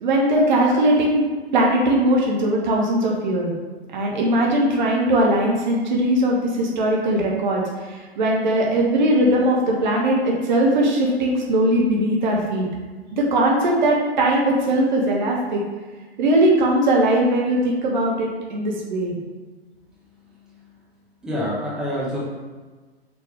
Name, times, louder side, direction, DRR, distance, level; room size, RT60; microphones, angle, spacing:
voice 1, 0.0-1.2 1.5-3.5 3.9-12.7 13.1-15.6 16.2-19.1, right 1 dB, 45° right, -2 dB, 1.2 m, -20 dB
voice 2, 21.2-22.2, equal, ahead, -8 dB, 1.5 m, -27 dB
6.1 x 4.7 x 3.6 m, 1.4 s
figure-of-eight pair, 115°, 32 cm